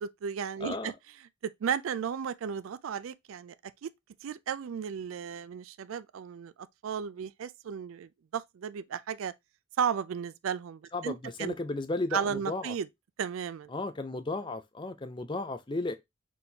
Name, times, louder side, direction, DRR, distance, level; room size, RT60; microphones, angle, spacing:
voice 1, 0.0-0.9 1.4-3.5 3.8-3.9 4.2-9.3 9.8-11.5 12.1-12.9 13.2-13.7, right 7 dB, 80° right, 0.4 m, -34 dB
voice 2, 0.6-0.9 10.9-12.7 13.7-15.9, left 2 dB, 25° left, 0.5 m, -34 dB
4.3 x 3.7 x 2.7 m
head